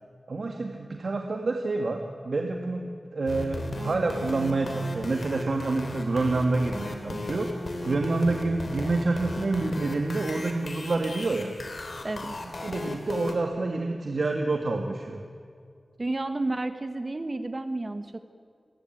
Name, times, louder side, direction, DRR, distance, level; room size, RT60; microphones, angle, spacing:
voice 1, 0.3-11.6 12.6-15.2, right 3 dB, 70° right, 3 dB, 2.0 m, -28 dB
sound 1, 3.3-13.4, left 2 dB, 65° left, 3.6 m, -36 dB
voice 2, 12.0-12.4 16.0-18.2, right 2 dB, 40° right, 8 dB, 1.4 m, -31 dB
28.0 x 20.5 x 9.3 m, 2.2 s
wide cardioid pair, 85°, 0 cm